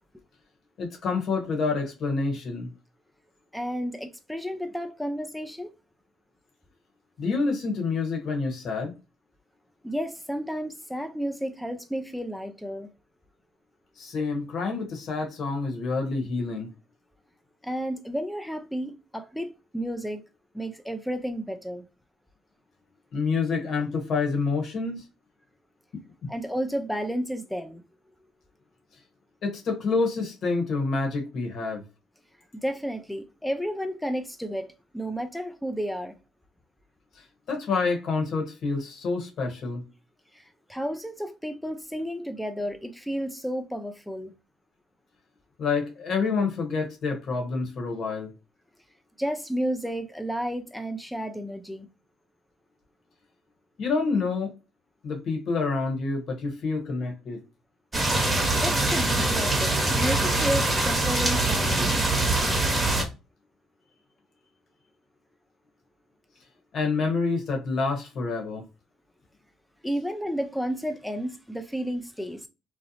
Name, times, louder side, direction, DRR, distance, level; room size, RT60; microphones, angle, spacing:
voice 1, 0.8-2.7 7.2-8.9 14.0-16.7 23.1-25.0 25.9-26.3 29.4-31.8 37.2-39.8 45.6-48.3 53.8-54.5 55.0-57.4 66.7-68.6, left 4 dB, 60° left, 1.0 m, -28 dB
voice 2, 3.5-5.7 9.8-12.9 17.6-20.2 20.5-21.8 26.3-27.8 32.5-36.2 40.3-44.3 49.2-51.9 58.6-62.0 69.8-72.5, equal, ahead, 0.4 m, -32 dB
sound 1, 57.9-63.0, right 2 dB, 20° right, 1.0 m, -23 dB
2.7 x 2.0 x 2.6 m
supercardioid pair, 70°, 0 cm